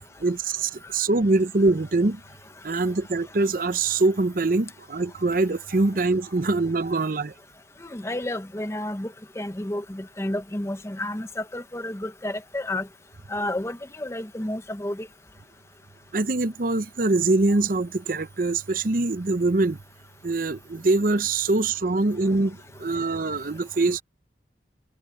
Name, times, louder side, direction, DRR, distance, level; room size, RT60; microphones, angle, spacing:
voice 1, 0.2-2.2 2.6-7.3 16.1-19.8 20.2-24.0, right 2 dB, 50° right, 0.7 m, -23 dB
voice 2, 7.8-9.1 9.4-12.9 13.3-15.1, left 1 dB, 15° left, 0.8 m, -31 dB
head